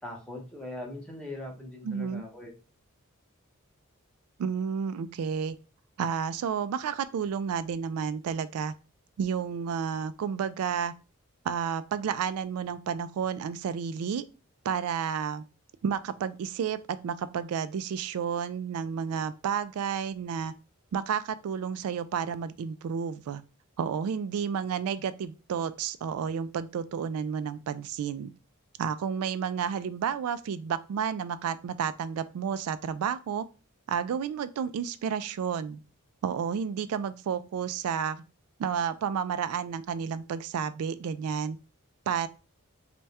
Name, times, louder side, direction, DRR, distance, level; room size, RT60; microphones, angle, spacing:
voice 1, 0.0-2.5, left 1 dB, 5° left, 0.8 m, -41 dB
voice 2, 1.8-2.2 4.4-5.6 6.0-8.7 9.2-10.9 11.4-14.2 14.6-15.4 15.8-20.5 20.9-23.4 23.8-28.3 28.8-33.4 33.9-35.8 36.2-38.2 38.6-41.6 42.1-42.3, right 7 dB, 85° right, 0.3 m, -31 dB
3.4 x 2.2 x 4.1 m
head